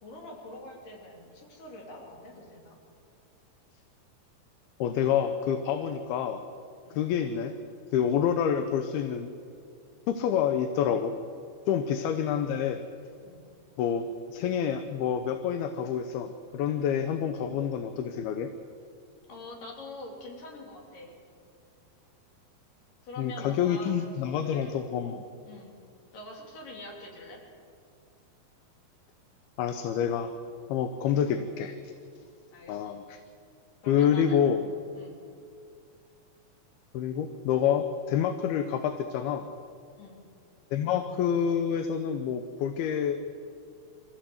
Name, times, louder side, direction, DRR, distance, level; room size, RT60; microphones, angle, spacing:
voice 1, 0.0-2.8 6.9-7.0 11.7-11.8 13.2-13.4 19.3-21.1 23.0-24.7 25.4-25.7 26.1-27.4 32.5-33.0 33.8-34.5 34.9-35.2 40.0-40.2, left 2 dB, 55° left, 0 dB, 4.7 m, -45 dB
voice 2, 4.8-6.4 7.0-7.6 7.9-9.3 10.1-11.2 11.7-12.8 13.8-18.5 23.2-25.2 29.6-30.3 30.7-31.9 32.7-33.2 33.9-34.6 36.9-39.5 40.7-43.2, left 8 dB, 80° left, 8 dB, 2.7 m, -28 dB
25.0 x 15.5 x 8.0 m, 2.4 s
omnidirectional pair, 4.6 m